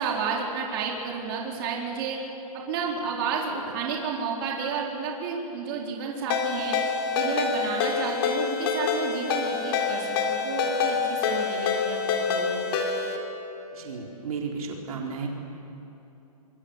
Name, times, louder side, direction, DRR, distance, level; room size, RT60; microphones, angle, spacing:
voice 1, 0.0-2.2 2.7-6.8 7.1-12.7, right 5 dB, 40° right, -1 dB, 4.3 m, -31 dB
Ringtone, 6.3-13.2, left 5 dB, 40° left, 3.5 m, -26 dB
voice 2, 13.7-15.3, right 5 dB, 65° right, 0 dB, 4.1 m, -33 dB
26.0 x 23.5 x 8.3 m, 3.0 s
hypercardioid pair, 165°, 19 cm